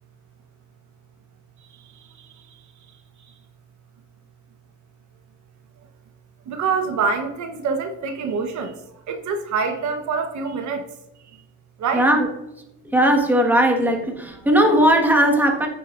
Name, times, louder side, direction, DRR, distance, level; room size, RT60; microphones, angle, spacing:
voice 1, 1.6-2.9 3.2-3.3 6.5-10.9 11.3-11.4 11.8-12.0, right 5 dB, 65° right, 6 dB, 1.1 m, -27 dB
voice 2, 11.9-12.3 12.8-15.7, right 1 dB, 5° right, 1 dB, 1.6 m, -18 dB
14.5 x 6.9 x 2.5 m, 0.91 s
cardioid pair, 135°, 32 cm